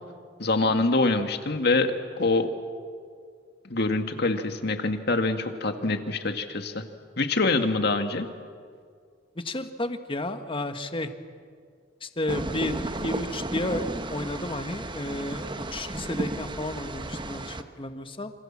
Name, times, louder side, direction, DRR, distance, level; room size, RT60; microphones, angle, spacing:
voice 1, 0.4-2.5 3.6-6.8 7.2-8.3, left 2 dB, 60° left, 6 dB, 2.0 m, -25 dB
voice 2, 9.4-11.1 12.0-13.8 14.1-18.3, left 1 dB, 30° left, 8 dB, 1.5 m, -32 dB
sound 1, 12.3-17.6, right 1 dB, 25° right, 1.2 m, -33 dB
28.0 x 26.5 x 7.5 m, 2.1 s
head